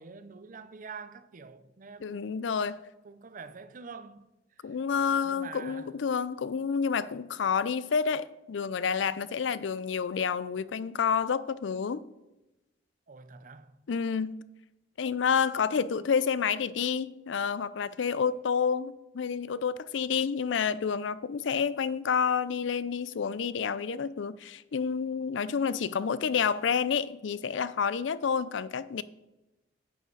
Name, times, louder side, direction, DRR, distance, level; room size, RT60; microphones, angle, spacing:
voice 1, 0.0-2.6 3.0-4.8 5.2-5.9 13.1-13.9, right 5 dB, 45° right, 0.5 m, -46 dB
voice 2, 2.0-2.8 4.6-12.0 13.9-14.4 15.0-29.0, left 6 dB, 75° left, 0.4 m, -29 dB
10.0 x 7.7 x 4.0 m
head